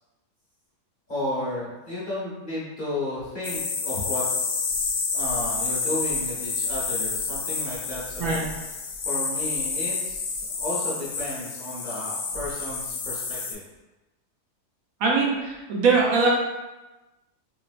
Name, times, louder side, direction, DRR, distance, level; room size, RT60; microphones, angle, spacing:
voice 1, 1.1-4.2 5.1-8.5 9.0-13.6, left 1 dB, 40° left, -9 dB, 0.8 m, -33 dB
sound 1, 3.4-13.5, left 4 dB, 75° left, 0.6 m, -29 dB
voice 2, 15.0-16.3, right 4 dB, 70° right, -3 dB, 0.9 m, -21 dB
3.0 x 2.9 x 2.4 m, 1.1 s
omnidirectional pair, 1.7 m